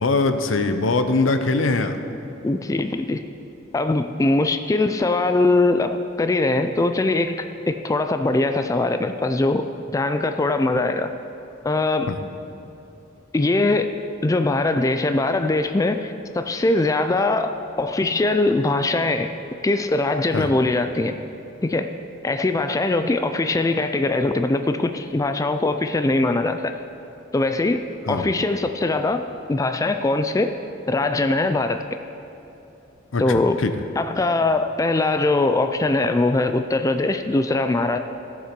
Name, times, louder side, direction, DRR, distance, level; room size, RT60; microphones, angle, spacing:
voice 1, 0.0-2.0 12.1-12.2 20.3-20.5 28.1-28.3 33.1-33.7, left 3 dB, 75° left, 9 dB, 0.7 m, -22 dB
voice 2, 2.4-3.2 3.7-9.6 9.9-11.1 11.6-12.1 13.3-13.9 14.2-19.3 19.6-21.2 21.6-21.9 22.2-26.7 27.3-27.8 28.1-30.5 30.9-31.8 33.2-33.6 34.0-38.0, left 2 dB, 15° left, 8 dB, 0.3 m, -21 dB
15.5 x 7.3 x 5.2 m, 2.9 s
head